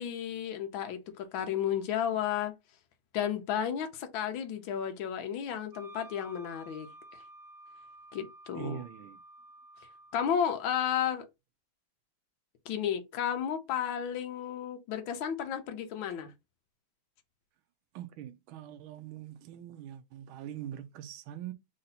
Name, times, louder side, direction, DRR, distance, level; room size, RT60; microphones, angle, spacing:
voice 1, 0.0-2.5 3.1-6.9 8.1-8.8 10.1-11.2 12.6-16.3, left 9 dB, 75° left, 1.6 m, -33 dB
Wind instrument woodwind instrument, 5.7-10.2, right 1 dB, 45° right, 0.7 m, -52 dB
voice 2, 8.5-9.2 17.9-21.5, right 10 dB, 85° right, 1.4 m, -43 dB
4.2 x 2.7 x 4.0 m
omnidirectional pair, 2.2 m